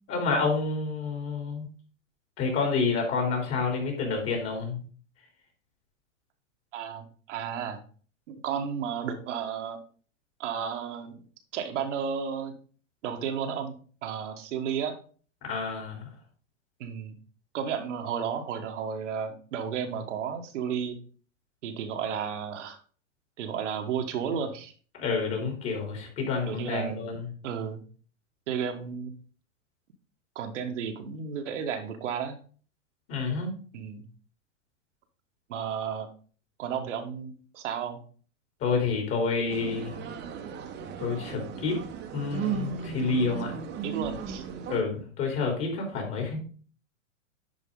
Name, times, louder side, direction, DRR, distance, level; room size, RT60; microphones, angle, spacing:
voice 1, 0.1-1.7 2.4-4.8 15.4-16.1 25.0-27.3 33.1-33.5 38.6-39.9 41.0-41.8 42.1-43.6 44.7-46.4, left 4 dB, 35° left, 1 dB, 3.4 m, -29 dB
voice 2, 6.7-7.8 8.3-9.8 10.4-11.2 11.5-12.5 13.0-13.7 14.0-14.9 16.8-17.2 17.5-21.0 21.6-22.8 23.4-24.7 26.5-27.0 27.4-27.8 28.5-29.1 30.3-32.4 33.7-34.1 35.5-36.1 36.6-38.0 43.8-44.4, right 7 dB, 65° right, 4 dB, 1.5 m, -33 dB
sound 1, 39.5-44.8, right 7 dB, 25° right, 1.2 m, -36 dB
10.5 x 4.7 x 3.8 m, 0.41 s
hypercardioid pair, 125°, 38 cm